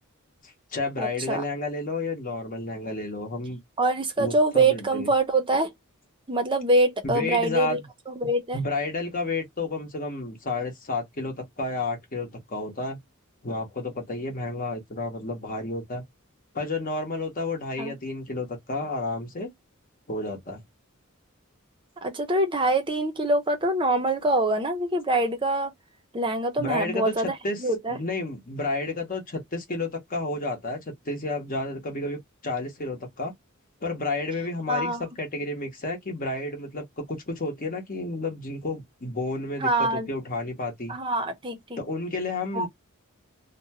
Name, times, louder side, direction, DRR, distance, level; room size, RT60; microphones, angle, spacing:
voice 1, 0.4-3.6 4.2-5.1 7.0-7.8 8.5-13.0 13.4-16.0 16.5-19.5 20.1-20.6 26.6-27.6 27.9-33.3 33.8-41.0 41.8-42.7, left 2 dB, 40° left, 1.0 m, -31 dB
voice 2, 1.0-1.4 3.8-5.7 6.3-7.8 8.1-8.6 17.8-17.9 22.0-25.7 26.1-28.0 34.7-35.1 39.6-40.1 40.9-41.8 42.5-42.7, right 2 dB, 25° right, 0.7 m, -24 dB
2.8 x 2.1 x 2.8 m
head